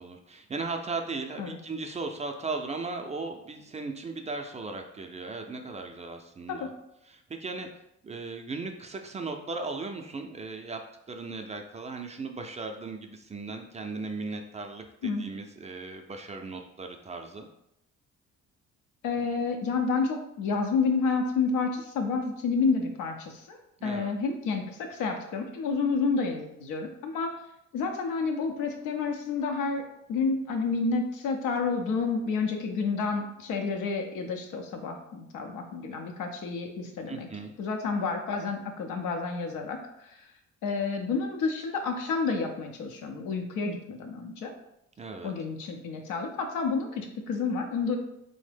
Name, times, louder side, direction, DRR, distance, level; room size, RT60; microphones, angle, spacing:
voice 1, 0.0-6.7 7.0-7.7 8.0-17.5 23.8-24.1 37.1-37.5 45.0-45.3, right 3 dB, 25° right, 4 dB, 0.4 m, -37 dB
voice 2, 19.0-23.6 23.8-27.3 27.7-29.8 30.1-37.3 37.6-39.8 40.0-40.2 40.6-44.5 45.2-48.0, left 4 dB, 90° left, 3 dB, 0.6 m, -29 dB
3.6 x 2.1 x 3.3 m, 0.81 s
cardioid pair, 90°, 30 cm